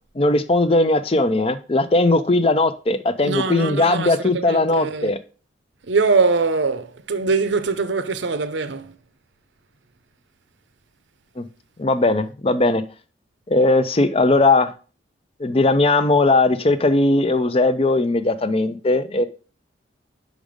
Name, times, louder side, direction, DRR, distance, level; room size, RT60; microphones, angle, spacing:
voice 1, 0.2-5.2 11.4-11.5 11.8-12.8 13.5-14.7 15.4-19.3, left 2 dB, 30° left, 0.6 m, -18 dB
voice 2, 3.2-5.1 5.9-9.0, right 4 dB, 75° right, 0.7 m, -22 dB
6.2 x 5.2 x 5.1 m
head